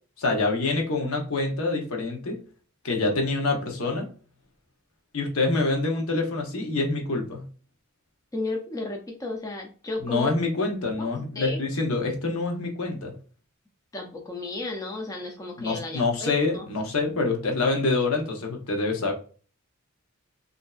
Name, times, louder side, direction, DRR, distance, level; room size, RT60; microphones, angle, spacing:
voice 1, 0.2-2.4 2.8-4.1 5.1-7.4 10.0-13.1 15.6-19.1, left 3 dB, 75° left, 2 dB, 0.8 m, -26 dB
voice 2, 8.3-10.3 11.0-11.1 11.4-11.6 13.9-16.7, left 2 dB, 15° left, 1 dB, 0.3 m, -33 dB
3.1 x 2.5 x 2.2 m, 0.40 s
head